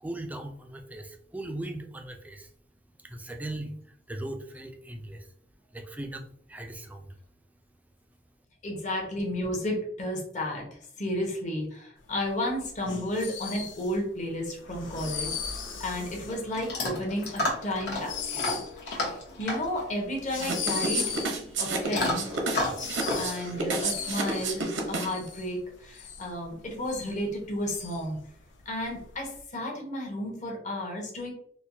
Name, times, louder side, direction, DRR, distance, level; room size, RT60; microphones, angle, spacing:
voice 1, 0.0-2.5 3.0-5.3 5.7-7.1, right 1 dB, 10° right, 4 dB, 0.4 m, -39 dB
voice 2, 8.6-10.6 11.0-21.2 21.6-22.3 23.1-28.2 28.6-31.3, left 1 dB, 40° left, 0 dB, 1.0 m, -33 dB
sound 1, 12.2-29.4, left 6 dB, 80° left, 0.6 m, -38 dB
Chewing mastication / Dog, 15.5-24.6, left 2 dB, 60° left, 1.1 m, -34 dB
sound 2, 20.4-25.3, right 3 dB, 85° right, 0.8 m, -31 dB
4.3 x 2.2 x 2.6 m, 0.65 s
head